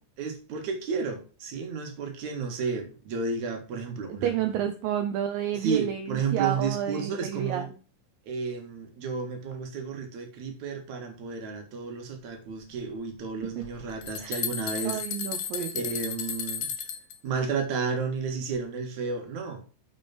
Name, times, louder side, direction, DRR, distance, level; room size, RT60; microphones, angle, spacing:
voice 1, 0.2-4.5 5.6-7.7 8.3-15.0 15.7-16.7 17.2-19.6, right 5 dB, 55° right, 4 dB, 3.1 m, -32 dB
voice 2, 4.1-7.6 14.2-14.4 14.8-15.8, right 10 dB, 80° right, 6 dB, 2.4 m, -30 dB
sound 1, 13.6-13.7 14.0-17.2, left 7 dB, 80° left, 3.4 m, -33 dB
7.5 x 6.5 x 4.4 m, 0.36 s
omnidirectional pair, 4.1 m